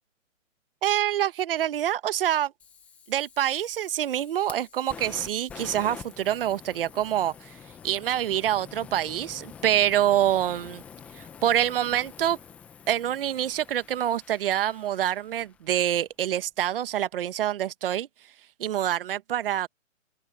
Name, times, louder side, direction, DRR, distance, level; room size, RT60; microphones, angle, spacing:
voice 1, 0.8-2.5 3.1-7.5 7.8-10.8 11.1-12.4 12.9-18.1 18.6-19.7, right 11 dB, 45° right, 1.2 m, -26 dB
Fire, 2.6-15.7, left 7 dB, 5° left, 0.6 m, -47 dB
open air
hypercardioid pair, 150°, 39 cm